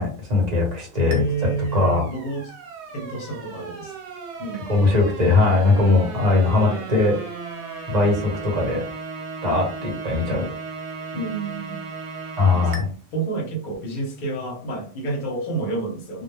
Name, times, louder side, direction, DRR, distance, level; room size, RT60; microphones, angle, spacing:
voice 1, 0.0-1.2 1.7-2.1 4.7-7.1 7.9-8.8 9.4-10.5 12.4-12.8, left 3 dB, 40° right, -1 dB, 1.1 m, -20 dB
voice 2, 1.0-2.5 2.9-4.0 4.4-4.8 6.6-6.8 11.1-11.8 12.5-16.2, right 3 dB, 50° left, 1 dB, 0.8 m, -29 dB
sound 1, 1.1-12.8, right 4 dB, 75° right, 0.9 m, -36 dB
2.2 x 2.2 x 3.1 m, 0.40 s
omnidirectional pair, 1.2 m